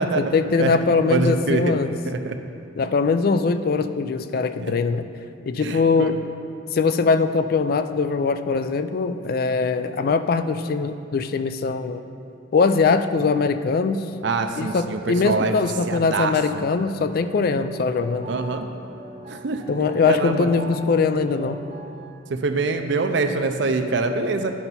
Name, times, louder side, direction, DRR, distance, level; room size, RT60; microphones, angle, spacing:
voice 1, 0.2-1.9 2.8-5.1 5.5-6.2 6.7-12.0 12.5-14.0 14.6-18.3 19.7-21.6, left 4 dB, 50° left, 11 dB, 0.3 m, -21 dB
voice 2, 1.1-1.7 2.1-2.4 4.6-4.7 5.6-6.1 14.2-15.5 15.9-16.7 18.3-18.7 19.3-19.6 20.1-20.5 22.3-24.5, right 3 dB, 65° right, 6 dB, 0.5 m, -24 dB
sound 1, 17.1-22.1, equal, 35° right, 0.9 m, -39 dB
10.5 x 5.7 x 4.1 m, 2.7 s
head